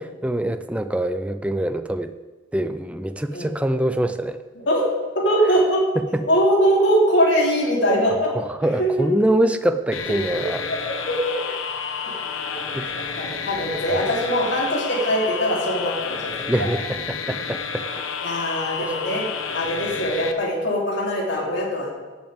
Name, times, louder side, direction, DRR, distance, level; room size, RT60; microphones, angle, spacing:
voice 1, 0.0-2.1 2.5-4.4 6.0-6.3 8.3-10.6 12.7-13.1 13.9-14.1 16.5-17.9 18.8-19.0, right 1 dB, 5° right, 10 dB, 0.4 m, -24 dB
voice 2, 5.1-5.8 6.3-8.3 8.7-9.1 10.5-11.3 12.0-12.6 13.0-16.7 18.2-19.2 19.5-21.9, equal, 60° left, -3 dB, 3.3 m, -22 dB
sound 1, 9.9-20.3, left 6 dB, 80° left, 1.0 m, -30 dB
15.5 x 10.5 x 3.6 m, 1.3 s
head